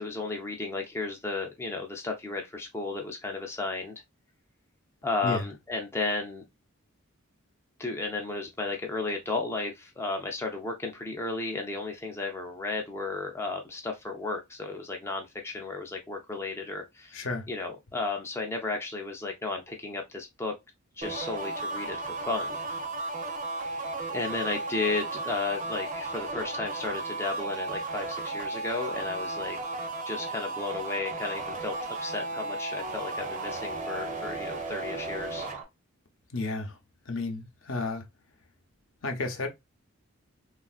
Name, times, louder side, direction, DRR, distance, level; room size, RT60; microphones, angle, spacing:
voice 1, 0.0-3.9 5.0-6.4 7.8-20.5 21.0-22.6 24.1-29.6 30.0-35.5, left 3 dB, 10° left, 0.4 m, -34 dB
voice 2, 17.1-17.4 36.3-36.7 37.1-38.0 39.0-39.5, left 3 dB, 65° left, 0.7 m, -32 dB
sound 1, 21.0-35.6, right 3 dB, 40° right, 0.6 m, -34 dB
3.2 x 2.4 x 2.3 m
head